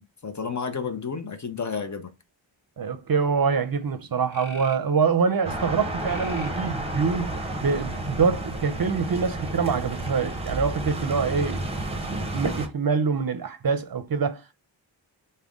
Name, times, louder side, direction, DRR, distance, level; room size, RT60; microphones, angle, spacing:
voice 1, 0.0-2.1, left 5 dB, 40° left, 0.6 m, -31 dB
voice 2, 2.8-7.3 7.6-11.6 12.1-14.5, right 5 dB, 50° right, 0.5 m, -25 dB
sound 1, 3.6-3.7 4.3-4.9 6.0-6.7 7.5-8.2 9.5-9.6, left 3 dB, 80° left, 1.0 m, -44 dB
sound 2, 5.4-12.7, right 1 dB, 15° right, 0.7 m, -31 dB
4.9 x 2.2 x 3.5 m
wide cardioid pair, 95°, 47 cm